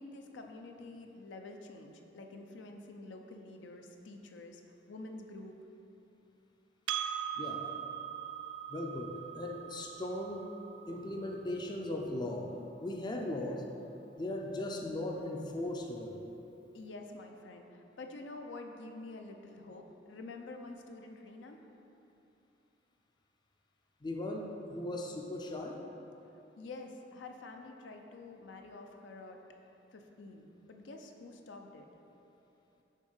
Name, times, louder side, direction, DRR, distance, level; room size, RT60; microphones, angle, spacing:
voice 1, 0.0-4.6 4.9-5.6 16.7-21.6 26.6-29.4 29.9-31.8, left 2 dB, 75° left, 3 dB, 0.5 m, -48 dB
Percussion, 6.9-11.7, right 9 dB, 75° right, 0.3 m, -41 dB
voice 2, 7.4-7.7 8.7-10.5 10.9-12.5 12.8-13.7 14.2-16.2 24.0-25.8, left 1 dB, 25° left, 1 dB, 0.4 m, -38 dB
6.4 x 3.6 x 5.5 m, 2.9 s
head